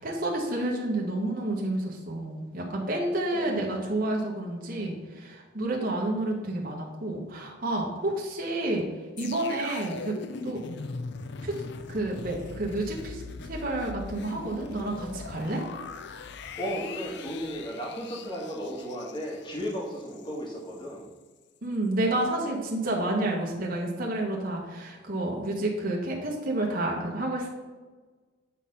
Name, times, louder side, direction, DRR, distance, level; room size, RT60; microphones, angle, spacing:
voice 1, 0.0-8.9 9.2-10.2 10.4-10.6 11.4-11.6 11.9-15.6 21.6-27.5, right 1 dB, 50° right, -1 dB, 1.5 m, -30 dB
voice 2, 3.3-3.7 16.6-21.0, equal, 25° left, -2 dB, 1.9 m, -35 dB
sound 1, 9.2-20.4 20.7-20.8, left 4 dB, 60° left, 0.5 m, -41 dB
8.2 x 4.0 x 5.5 m, 1.3 s
head